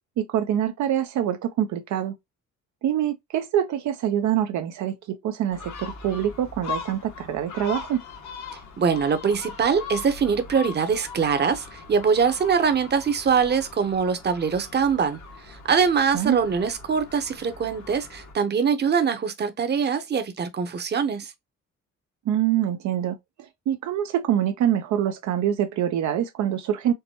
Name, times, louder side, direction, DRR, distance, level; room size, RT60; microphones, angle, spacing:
voice 1, 0.2-2.1 2.8-8.0 16.1-16.4 22.3-23.2 23.7-26.9, right 10 dB, 70° right, 0.6 m, -25 dB
Gull seagull, 5.5-18.3, left 6 dB, 70° left, 1.3 m, -40 dB
voice 2, 8.8-15.2 15.5-21.3, right 6 dB, 35° right, 0.8 m, -23 dB
4.6 x 2.1 x 2.9 m
cardioid pair, 90°, 30 cm